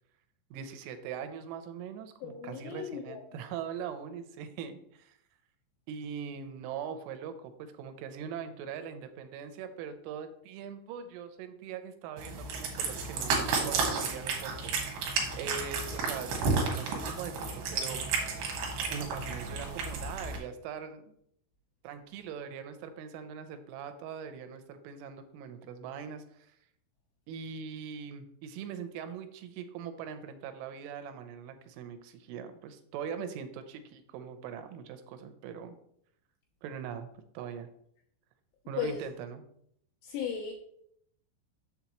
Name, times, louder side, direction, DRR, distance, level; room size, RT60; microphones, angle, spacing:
voice 1, 0.5-5.2 5.9-16.3 16.7-18.0 18.9-21.0 21.8-26.6 27.3-35.8 36.6-37.1 37.3-37.7 38.7-39.4, right 7 dB, 85° right, 9 dB, 3.1 m, -41 dB
voice 2, 2.2-3.2 38.8-39.1 40.0-40.5, left 8 dB, 80° left, 1 dB, 2.4 m, -36 dB
Cat, 12.2-20.4, right 4 dB, 70° right, 3.3 m, -32 dB
7.4 x 6.9 x 3.0 m, 0.70 s
omnidirectional pair, 5.6 m